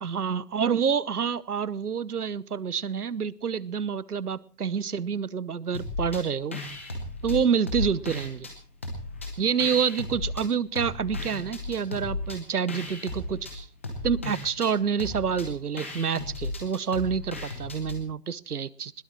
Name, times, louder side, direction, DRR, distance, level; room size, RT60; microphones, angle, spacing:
voice 1, 0.0-6.6 7.2-8.5 9.4-13.7 14.0-18.9, right 6 dB, 70° right, 21 dB, 1.0 m, -28 dB
sound 1, 5.7-6.2 6.5-8.5 8.8-10.5 10.8-18.0, left 2 dB, 10° left, 0.8 m, -35 dB
21.0 x 19.0 x 3.1 m, 0.40 s
figure-of-eight pair, 160°, 47 cm